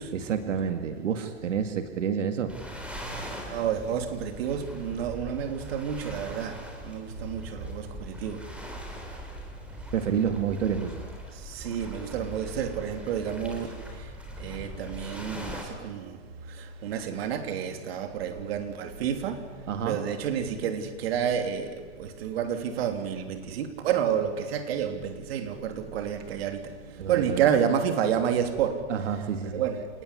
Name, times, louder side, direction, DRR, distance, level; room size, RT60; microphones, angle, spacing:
voice 1, 0.1-2.5 9.9-11.0 19.7-20.0 27.0-27.5 28.9-29.6, right 7 dB, 85° right, 2.3 m, -29 dB
sound 1, 2.5-15.6, equal, 5° right, 3.7 m, -41 dB
voice 2, 3.5-6.6 6.8-8.4 11.5-13.7 14.4-16.2 16.8-19.4 19.8-26.6 27.1-28.8 29.5-30.0, right 8 dB, 55° right, 3.3 m, -29 dB
28.0 x 19.5 x 10.0 m
hypercardioid pair, 155°, 36 cm